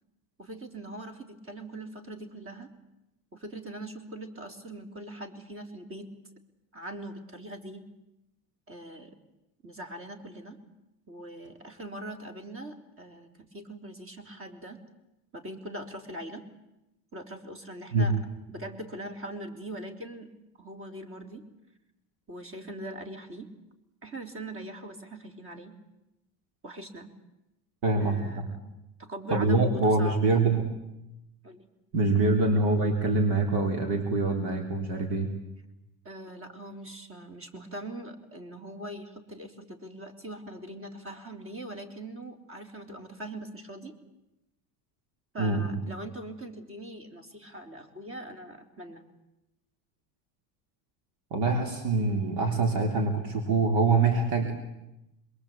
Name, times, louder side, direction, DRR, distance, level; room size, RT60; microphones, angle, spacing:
voice 1, 0.4-2.7 3.3-6.1 6.7-7.9 8.7-9.1 9.6-10.6 11.1-14.8 15.3-16.5 17.1-18.2 18.5-20.3 20.6-21.5 22.3-23.5 24.0-25.8 26.6-27.1 28.0-28.7 29.0-30.2 31.4-31.7 36.0-44.0 45.3-49.0, right 1 dB, 30° right, 6 dB, 3.8 m, -41 dB
voice 2, 27.8-28.5 29.3-30.6 31.9-35.3 45.4-45.8 51.3-54.5, right 3 dB, 80° right, 3 dB, 3.8 m, -25 dB
26.5 x 22.0 x 8.6 m, 0.92 s
cardioid pair, 120°, 42 cm